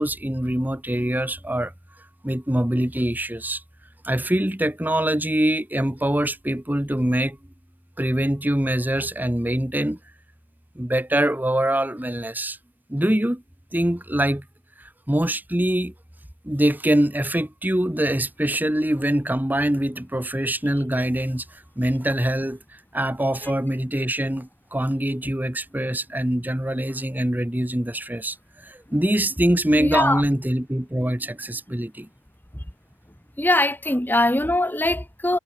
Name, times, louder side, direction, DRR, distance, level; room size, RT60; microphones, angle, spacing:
voice 1, 0.0-1.7 2.2-3.6 4.0-7.4 8.0-10.0 10.7-12.6 12.9-13.4 13.7-14.4 15.1-15.9 16.4-21.4 21.8-22.6 22.9-28.4 28.6-32.1, right 1 dB, 10° right, 1.0 m, -24 dB
voice 2, 29.7-30.2 33.4-35.4, left 1 dB, 10° left, 1.5 m, -22 dB
head